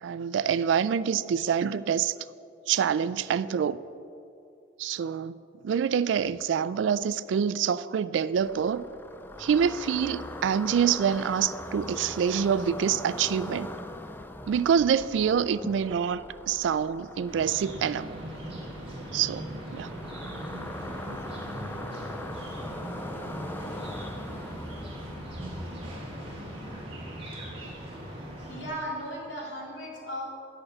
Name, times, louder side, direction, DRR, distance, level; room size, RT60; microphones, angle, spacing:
voice 1, 0.0-2.1 2.7-3.8 4.8-5.4 5.6-8.8 9.4-13.7 14.5-18.1 19.1-19.9 21.1-21.2, right 7 dB, 80° right, 0.3 m, -26 dB
sound 1, 8.4-26.8, left 1 dB, 10° left, 0.4 m, -41 dB
sound 2, 17.3-28.7, right 1 dB, 30° right, 1.6 m, -39 dB
voice 2, 28.4-30.3, equal, 70° left, 2.3 m, -36 dB
8.6 x 6.2 x 6.4 m
head